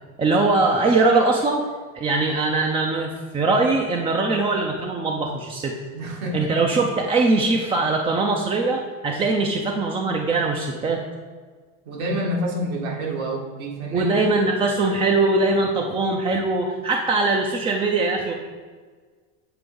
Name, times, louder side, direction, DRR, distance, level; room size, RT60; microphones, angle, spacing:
voice 1, 0.2-1.6 1.9-5.8 6.3-11.0 13.9-18.3, right 3 dB, 15° right, 2 dB, 0.3 m, -21 dB
voice 2, 5.9-6.5 11.9-14.5, equal, 85° right, -2 dB, 2.0 m, -28 dB
7.7 x 3.4 x 5.3 m, 1.5 s
supercardioid pair, 120°, 41 cm